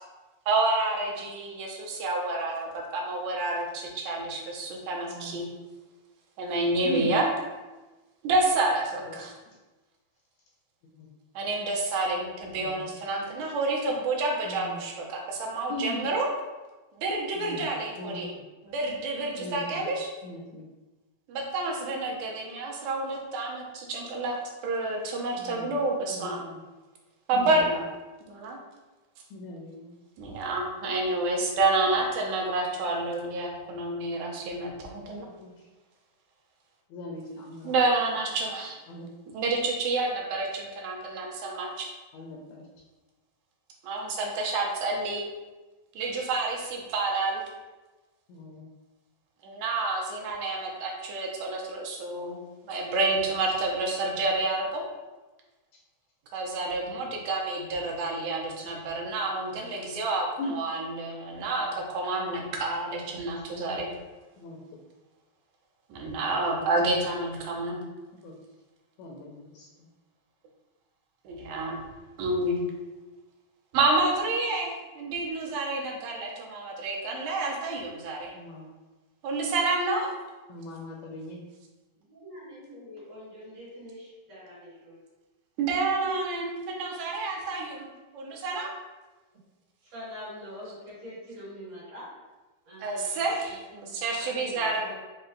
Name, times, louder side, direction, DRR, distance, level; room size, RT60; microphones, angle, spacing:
voice 1, 0.5-5.5 6.4-7.3 8.2-9.3 11.4-16.3 16.9-18.3 18.7-20.1 21.3-24.4 24.6-26.4 27.3-27.8 28.3-28.6 30.2-35.3 37.6-38.8 39.3-41.9 43.8-45.2 46.0-47.4 49.4-52.4 52.7-54.8 56.3-63.9 65.9-67.8 71.2-71.8 72.2-72.6 73.7-78.3 79.2-80.1 85.6-88.7 92.8-94.9, right 2 dB, 75° right, 0 dB, 2.0 m, -29 dB
voice 2, 5.1-5.5 6.8-7.2 9.1-9.2 9.5-9.6 10.8-11.1 12.6-12.9 14.4-14.8 15.7-16.1 17.3-18.4 19.4-19.9 20.2-20.7 25.4-25.8 26.1-26.6 27.3-27.8 29.3-30.3 35.4-35.5 36.9-37.7 38.9-39.1 42.1-42.7 48.3-48.7 55.7-55.8 58.7-58.8 60.4-60.5 64.4-64.6 68.2-68.3 69.0-69.9 72.2-72.3 78.3-78.8 80.5-81.4, left 1 dB, 80° left, -1 dB, 1.7 m, -39 dB
voice 3, 82.0-85.0 89.8-92.2 92.7-94.8, left 1 dB, 60° right, -8 dB, 2.6 m, -45 dB
5.3 x 2.2 x 3.8 m, 1.2 s
omnidirectional pair, 3.4 m